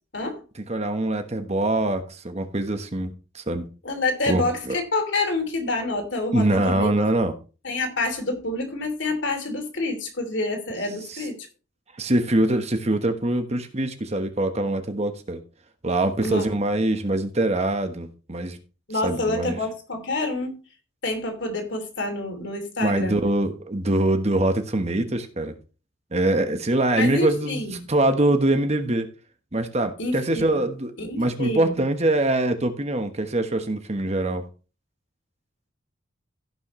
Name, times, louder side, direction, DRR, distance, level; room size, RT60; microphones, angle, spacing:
voice 1, 0.1-0.4 3.8-6.9 7.6-11.4 16.2-16.5 18.9-20.6 21.0-23.2 26.9-27.7 30.0-30.4 31.0-31.7, left 2 dB, 60° left, 5 dB, 2.9 m, -27 dB
voice 2, 0.7-3.6 4.3-4.7 6.3-7.3 12.0-15.4 15.8-18.6 19.0-19.6 22.8-25.5 26.1-27.6 27.9-29.1 29.5-34.4, right 1 dB, 30° right, 7 dB, 1.2 m, -23 dB
16.5 x 6.3 x 3.1 m, 0.33 s
head